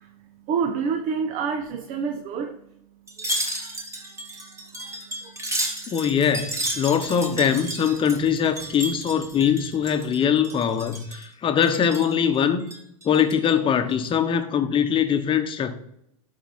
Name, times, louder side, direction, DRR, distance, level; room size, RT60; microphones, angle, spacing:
voice 1, 0.0-2.6 3.2-5.9, right 6 dB, 45° right, 1.1 m, -31 dB
Wind chime, 3.1-10.2 10.4-11.3 11.6-12.2 12.6-13.5 13.9-14.1, right 1 dB, 15° right, 2.2 m, -32 dB
voice 2, 5.9-12.7 13.0-15.7, left 8 dB, 30° left, 1.1 m, -22 dB
11.5 x 4.8 x 4.3 m
hypercardioid pair, 100°, 19 cm